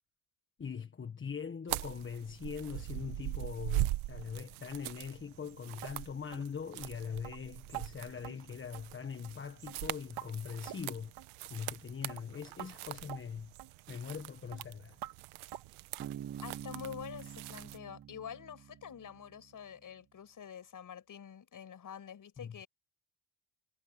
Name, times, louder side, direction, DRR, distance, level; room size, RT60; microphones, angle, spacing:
voice 1, 0.6-11.1 11.5-13.5 13.9-15.0 22.4-22.6, left 6 dB, 25° left, 1.5 m, -42 dB
sound 1, 1.7-17.8, right 18 dB, 80° right, 1.2 m, -42 dB
sound 2, 5.8-6.0 6.3-6.5 6.8-6.9 7.2-7.4 7.7-7.9 8.2-8.4 8.7-9.0 9.2-9.4 9.7-10.3 10.7-10.9 11.2-11.3 11.7-11.8 12.1-12.2 12.6-12.7 13.1-13.2 13.6-13.7 14.1-14.2 14.5-14.6 15.0-15.1 15.5-15.7 16.0-16.2 16.5-16.7 17.0-17.1 17.5-17.6 18.0-18.1, right 13 dB, 50° right, 2.0 m, -46 dB
Bass guitar, 16.0-19.5, right 10 dB, 30° right, 0.7 m, -46 dB
voice 2, 16.4-22.7, left 8 dB, 40° left, 7.0 m, -47 dB
cardioid pair, 125°, 48 cm